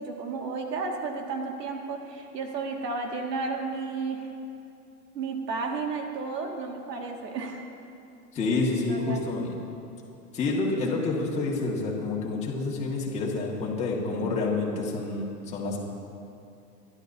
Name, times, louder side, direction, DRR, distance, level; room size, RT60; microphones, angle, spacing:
voice 1, 0.0-4.3 5.1-7.6 8.9-9.4, right 4 dB, 90° right, 1 dB, 2.0 m, -33 dB
voice 2, 8.3-9.5 10.3-15.8, left 3 dB, 15° left, -4 dB, 1.7 m, -28 dB
26.0 x 11.5 x 2.7 m, 2.6 s
hypercardioid pair, 155°, 48 cm